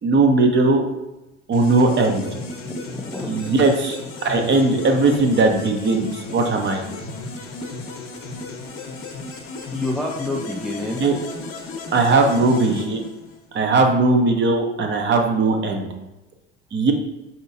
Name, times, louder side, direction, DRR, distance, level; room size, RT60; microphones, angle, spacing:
voice 1, 0.0-0.8 1.5-2.3 3.3-6.8 11.0-11.2 11.9-13.1 13.5-15.9 16.7-16.9, right 3 dB, 30° right, 4 dB, 0.8 m, -18 dB
sound 1, 1.5-13.6, left 3 dB, 35° left, 0.9 m, -34 dB
voice 2, 2.6-3.6 9.7-11.0, left 2 dB, ahead, 0 dB, 0.5 m, -28 dB
5.4 x 2.8 x 2.7 m, 1.0 s
hypercardioid pair, 70°, 36 cm